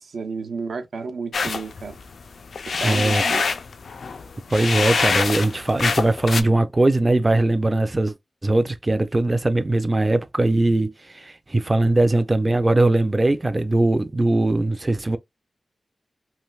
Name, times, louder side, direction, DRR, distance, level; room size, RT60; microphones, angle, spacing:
voice 1, 0.0-2.0 2.7-3.4, right 4 dB, 85° right, 0.6 m, -32 dB
sound 1, 1.3-6.4, left 5 dB, 80° left, 0.4 m, -25 dB
voice 2, 2.8-3.2 4.5-8.1 8.4-15.2, right 2 dB, 25° right, 0.3 m, -20 dB
3.2 x 2.5 x 2.3 m
wide cardioid pair, 95°, 0 cm